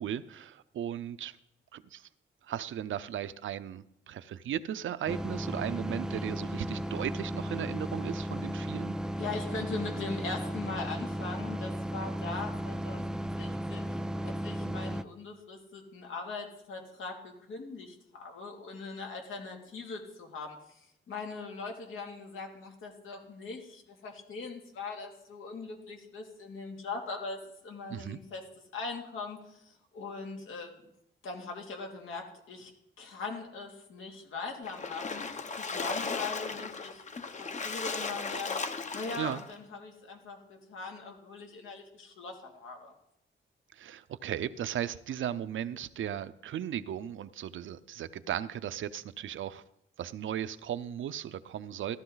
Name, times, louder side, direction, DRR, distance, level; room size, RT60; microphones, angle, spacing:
voice 1, 0.0-1.4 1.7-2.1 2.4-9.0 27.9-28.2 39.2-39.4 43.7-49.6 50.0-52.0, right 10 dB, 75° right, 13 dB, 0.7 m, -36 dB
sound 1, 5.1-15.0, equal, 5° right, 0.4 m, -35 dB
voice 2, 9.2-28.4 28.7-30.8 31.2-32.7 33.0-38.5 38.9-42.9, left 4 dB, 85° left, 1 dB, 2.8 m, -41 dB
Splash splatter, 34.6-39.5, left 4 dB, 35° left, 0.9 m, -36 dB
15.0 x 12.5 x 4.0 m, 0.76 s
wide cardioid pair, 130°, 20 cm